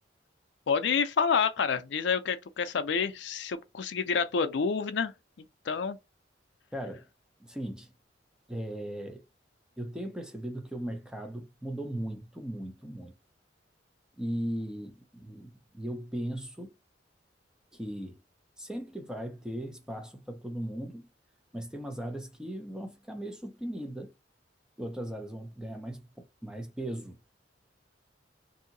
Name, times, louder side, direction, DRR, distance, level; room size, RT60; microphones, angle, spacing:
voice 1, 0.7-5.1 5.7-6.0, left 6 dB, 70° left, 0.5 m, -28 dB
voice 2, 6.7-7.1 7.5-7.9 8.5-9.2 9.8-13.1 14.2-16.7 17.7-18.2 18.6-21.0 21.5-24.1 24.8-27.2, right 1 dB, 5° right, 0.6 m, -38 dB
2.7 x 2.7 x 2.6 m
head